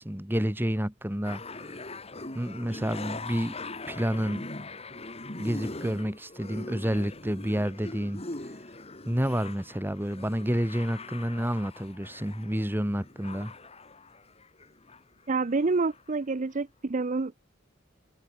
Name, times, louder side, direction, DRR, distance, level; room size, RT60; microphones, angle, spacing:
voice 1, 0.0-1.4 2.3-3.5 3.9-4.4 5.4-8.2 9.0-13.5, equal, 10° right, 1.6 m, -29 dB
sound 1, 1.2-15.0 15.3-16.1 16.6-16.7, left 2 dB, 30° left, 3.0 m, -42 dB
voice 2, 15.3-17.3, right 3 dB, 40° right, 0.6 m, -27 dB
head